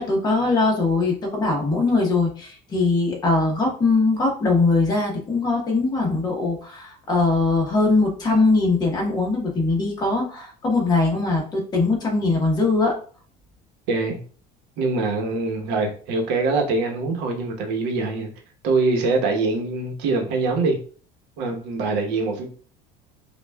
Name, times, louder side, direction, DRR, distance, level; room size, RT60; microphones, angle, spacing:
voice 1, 0.0-12.9, left 3 dB, 20° left, -1 dB, 1.1 m, -21 dB
voice 2, 13.9-14.2 14.8-18.3 18.6-20.8 21.4-22.5, right 3 dB, 70° right, 3 dB, 1.0 m, -23 dB
5.4 x 2.4 x 2.3 m, 0.43 s
cardioid pair, 160°, 18 cm